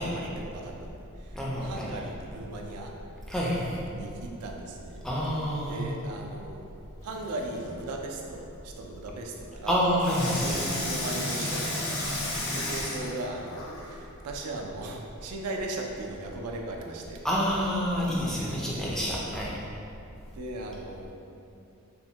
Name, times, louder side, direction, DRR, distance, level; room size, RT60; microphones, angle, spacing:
voice 1, 0.0-3.0 3.9-5.1 5.7-6.7 7.0-9.8 10.4-17.3 18.3-18.6 20.1-21.1, right 2 dB, 90° right, 1 dB, 0.3 m, -38 dB
voice 2, 1.3-1.9 3.3-3.8 5.0-5.9 9.7-10.6 17.2-19.6, equal, ahead, -6 dB, 0.3 m, -28 dB
Water tap faucet / Sink (filling or washing), 7.0-7.7 10.0-13.9 14.6-14.7, left 1 dB, 65° left, 0.7 m, -32 dB
2.9 x 2.1 x 2.7 m, 2.6 s
head